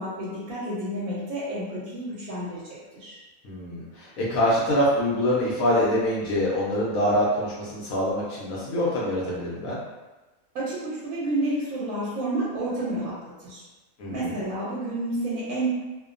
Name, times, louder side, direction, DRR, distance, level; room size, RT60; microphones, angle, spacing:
voice 1, 0.0-2.6 2.9-3.2 10.5-13.1 13.4-13.6 14.1-15.7, right 1 dB, 90° right, -7 dB, 1.1 m, -30 dB
voice 2, 3.4-9.8 14.0-14.4, equal, 80° left, -6 dB, 1.0 m, -25 dB
2.6 x 2.1 x 2.4 m, 1.1 s
omnidirectional pair, 1.5 m